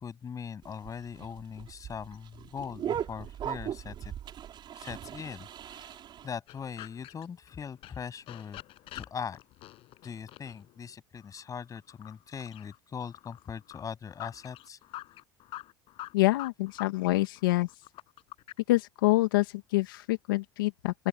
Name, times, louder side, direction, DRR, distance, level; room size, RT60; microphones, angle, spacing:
voice 1, 0.0-4.1 4.7-8.6 8.9-9.4 10.0-14.8, left 7 dB, 30° left, 7.9 m, -41 dB
sound 1, 0.6-6.3, right 10 dB, 45° right, 6.4 m, -38 dB
sound 2, 6.5-18.6, left 16 dB, 55° left, 7.5 m, -47 dB
voice 2, 16.1-17.7 18.7-21.1, left 19 dB, 85° left, 2.2 m, -26 dB
open air
hypercardioid pair, 90°, 11 cm